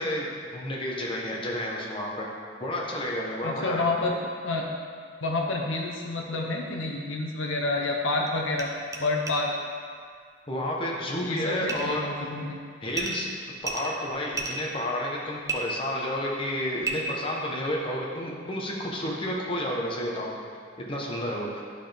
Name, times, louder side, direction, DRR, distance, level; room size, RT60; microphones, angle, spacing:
voice 1, 0.0-2.3 2.6-3.9 10.5-12.1 12.8-13.3 13.6-20.3 20.9-21.6, left 1 dB, 25° left, -3 dB, 0.9 m, -31 dB
voice 2, 3.4-4.2 4.4-4.7 5.2-8.7 9.0-9.5 11.2-12.6, left 2 dB, 70° left, 0 dB, 0.7 m, -29 dB
Small wood Block, 7.4-7.5 8.3-8.4 8.5-8.6 8.9-9.0 9.3-9.4 11.7-11.9 12.9-13.2 13.6-14.6 15.5-15.6 16.8-16.9, right 4 dB, 15° right, 0.5 m, -31 dB
11.0 x 4.0 x 3.4 m, 2.1 s
head